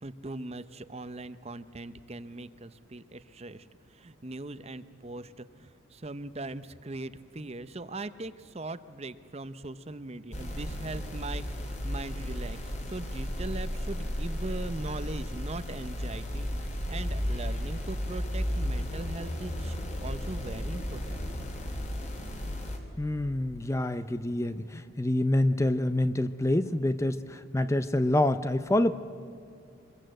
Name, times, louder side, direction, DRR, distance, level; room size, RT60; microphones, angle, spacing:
voice 1, 0.0-21.3, right 2 dB, 30° right, 13 dB, 0.7 m, -40 dB
sound 1, 10.3-22.8, equal, 30° left, 2.7 m, -34 dB
voice 2, 23.0-28.9, left 1 dB, 15° left, 12 dB, 0.5 m, -27 dB
25.5 x 22.0 x 7.8 m, 2.4 s
head